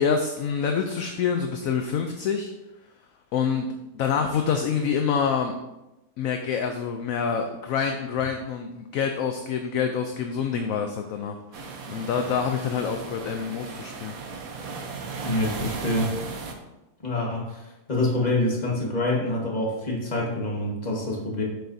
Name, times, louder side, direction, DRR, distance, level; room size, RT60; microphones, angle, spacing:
voice 1, 0.0-2.5 3.3-3.7 3.9-5.5 6.2-14.1, left 6 dB, 70° left, 5 dB, 0.9 m, -26 dB
sound 1, 11.5-16.5, right 4 dB, 65° right, 1.2 m, -36 dB
voice 2, 15.2-16.1 17.0-21.4, left 1 dB, 25° left, -3 dB, 1.5 m, -26 dB
7.7 x 6.8 x 2.7 m, 0.98 s
omnidirectional pair, 1.7 m